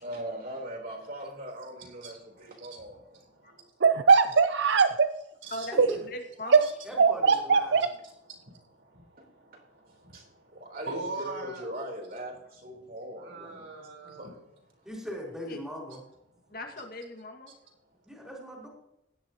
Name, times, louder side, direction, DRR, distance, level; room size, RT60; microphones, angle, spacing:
voice 1, 0.0-3.2 9.2-9.3 9.5-9.6 10.1-10.2 10.5-14.3, right 1 dB, 50° right, 0 dB, 3.7 m, -40 dB
voice 2, 1.6-3.8 5.4-6.0 6.6-6.7 8.3-11.7 12.8-14.4, right 3 dB, 85° right, 0 dB, 4.2 m, -43 dB
voice 3, 3.8-5.1 5.8-5.9 6.5-6.6 7.0-7.9, right 5 dB, 70° right, 9 dB, 0.5 m, -20 dB
voice 4, 5.5-6.7 15.5-15.6 16.5-17.5, left 1 dB, 50° left, 3 dB, 2.0 m, -39 dB
voice 5, 6.9-7.9 14.8-16.0 18.0-18.7, equal, 5° right, -3 dB, 3.7 m, -39 dB
16.5 x 11.5 x 2.9 m, 0.84 s
head